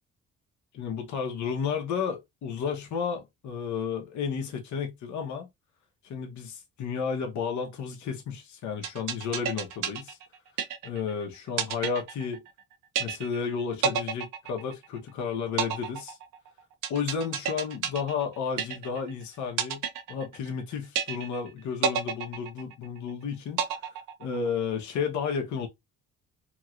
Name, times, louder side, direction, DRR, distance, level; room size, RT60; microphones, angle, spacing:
voice 1, 0.7-5.5 6.0-10.2 10.8-12.4 13.0-16.2 16.9-19.8 20.1-23.6 24.2-25.7, left 6 dB, 70° left, 1.1 m, -32 dB
sound 1, 8.8-11.1 11.6-12.6 13.0-13.5 13.8-15.1 15.6-19.1 19.6-20.6 21.0-21.5 21.8-23.1 23.6-24.6, right 8 dB, 90° right, 0.6 m, -31 dB
3.0 x 2.9 x 2.5 m
cardioid pair, 90°, 30 cm